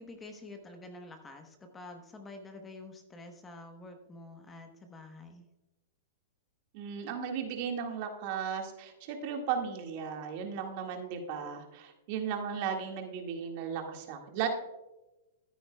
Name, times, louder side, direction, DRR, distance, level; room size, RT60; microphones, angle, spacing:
voice 1, 0.0-5.5, left 2 dB, 15° left, 5 dB, 1.0 m, -48 dB
voice 2, 6.7-14.5, right 7 dB, 45° right, 3 dB, 1.7 m, -36 dB
14.0 x 9.2 x 2.2 m, 1.0 s
hypercardioid pair, 145°, 0 cm